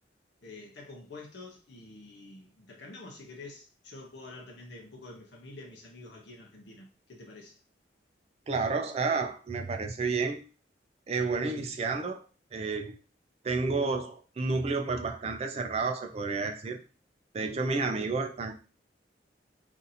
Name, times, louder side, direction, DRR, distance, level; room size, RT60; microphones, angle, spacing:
voice 1, 0.4-7.6, left 2 dB, 70° left, 0.7 m, -47 dB
voice 2, 8.5-10.4 11.1-12.2 12.5-12.9 13.4-16.8 17.3-18.5, right 4 dB, 35° right, 0.4 m, -30 dB
2.6 x 2.5 x 4.1 m
head